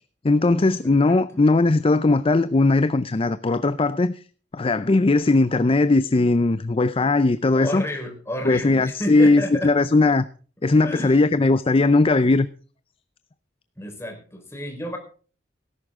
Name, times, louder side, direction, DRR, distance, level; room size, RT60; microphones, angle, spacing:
voice 1, 0.2-4.1 4.5-7.8 8.4-10.2 10.6-12.5, left 3 dB, 30° left, 0.5 m, -19 dB
voice 2, 0.8-1.2 7.5-9.9 10.8-11.2 13.8-15.0, left 1 dB, 15° left, 4.4 m, -31 dB
18.0 x 11.0 x 3.7 m
head